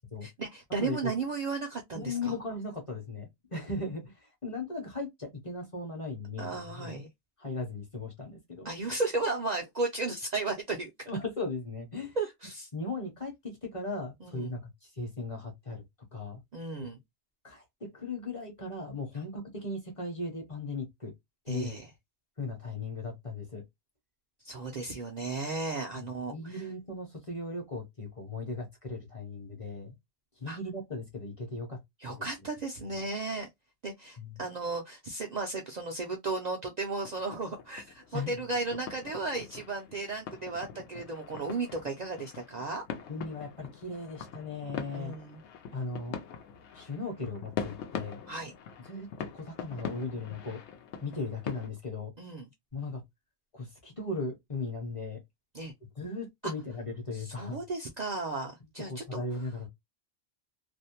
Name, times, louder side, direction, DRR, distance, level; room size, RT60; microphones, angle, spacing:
voice 1, 0.2-2.3 6.4-7.1 8.6-11.1 12.2-12.7 14.2-14.5 16.5-17.0 21.5-21.9 24.4-26.7 30.5-30.6 32.0-33.5 33.8-42.8 44.9-45.4 48.3-48.5 52.2-52.5 55.5-55.7 56.4-56.5 57.1-59.2, right 3 dB, 55° right, 0.5 m, -35 dB
voice 2, 0.8-1.1 1.9-7.0 7.4-8.7 11.1-12.2 12.7-15.8 16.1-16.4 17.4-21.1 21.4-21.8 22.4-23.6 26.0-29.9 30.4-31.8 32.1-32.2 32.9-33.1 34.2-34.4 38.1-38.5 43.1-45.2 45.7-46.2 46.7-48.2 48.9-50.6 51.0-52.1 52.7-53.0 53.5-55.2 56.0-57.6 58.9-59.7, left 2 dB, 35° left, 0.7 m, -37 dB
sound 1, 37.0-51.7, left 7 dB, 85° left, 0.9 m, -43 dB
2.5 x 2.0 x 2.7 m
omnidirectional pair, 1.1 m